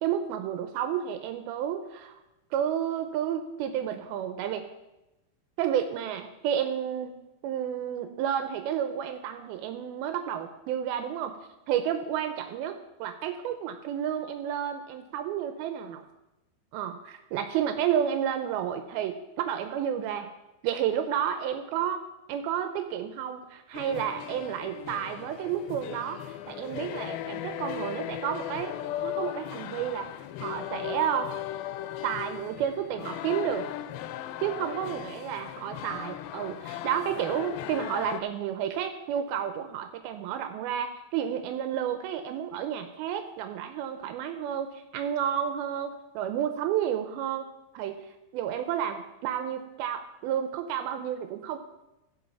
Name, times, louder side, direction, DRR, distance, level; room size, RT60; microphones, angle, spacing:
voice 1, 0.0-2.2 2.5-4.7 5.6-7.1 7.4-11.4 11.7-16.0 16.7-20.3 20.6-22.0 22.3-28.8 29.0-30.1 30.4-31.3 32.0-33.7 34.4-47.5 47.7-51.6, right 9 dB, 85° right, 7 dB, 2.5 m, -31 dB
sound 1, 23.7-38.2, left 13 dB, 85° left, 2.4 m, -37 dB
15.5 x 5.5 x 5.7 m, 0.95 s
omnidirectional pair, 4.3 m